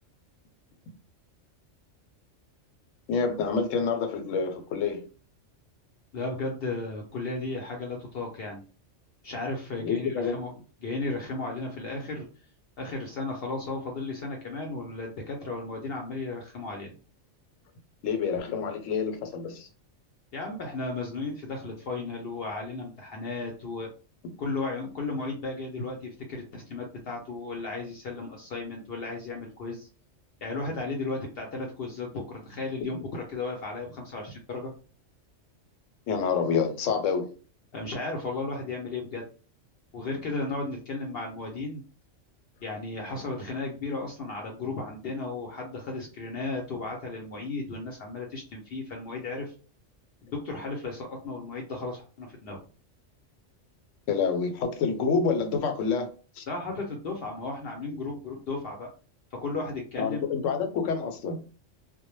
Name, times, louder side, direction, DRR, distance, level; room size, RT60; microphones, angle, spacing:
voice 1, 3.1-5.1 9.8-10.3 18.0-19.7 36.1-37.4 54.1-56.1 56.4-56.5 60.0-61.4, left 5 dB, 80° left, 0.9 m, -27 dB
voice 2, 6.1-8.6 9.2-10.5 10.8-12.3 12.8-17.0 20.3-23.9 24.4-29.9 30.4-34.7 37.7-39.3 39.9-41.8 42.6-49.5 50.2-52.7 56.5-58.9 59.3-60.2, left 3 dB, 60° left, 0.7 m, -34 dB
2.1 x 2.0 x 3.0 m
omnidirectional pair, 1.3 m